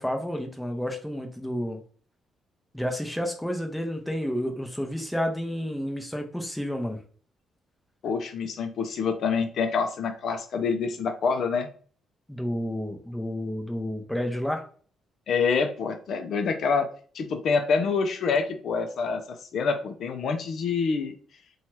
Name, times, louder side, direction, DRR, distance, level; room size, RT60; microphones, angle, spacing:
voice 1, 0.0-1.8 2.7-7.0 12.3-14.6, equal, 5° left, 3 dB, 0.6 m, -30 dB
voice 2, 8.0-11.7 15.3-16.9 17.1-21.1, left 5 dB, 65° left, 6 dB, 0.4 m, -26 dB
2.7 x 2.2 x 3.1 m, 0.43 s
cardioid pair, 90°, 0 cm